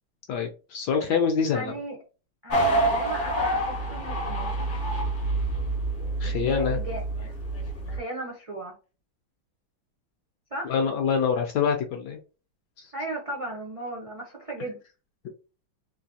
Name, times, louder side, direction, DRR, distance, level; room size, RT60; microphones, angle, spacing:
voice 1, 0.3-1.7 6.2-6.8 10.6-12.2 12.8-12.9, left 6 dB, 70° left, 4 dB, 1.0 m, -25 dB
voice 2, 1.5-2.0 2.4-4.6 6.2-7.3 7.9-8.7 10.5-10.8 12.9-14.8, right 1 dB, 60° right, -1 dB, 0.3 m, -36 dB
sound 1, 2.5-8.0, right 2 dB, 45° left, 0.6 m, -27 dB
3.8 x 2.7 x 2.8 m, 0.33 s
omnidirectional pair, 2.3 m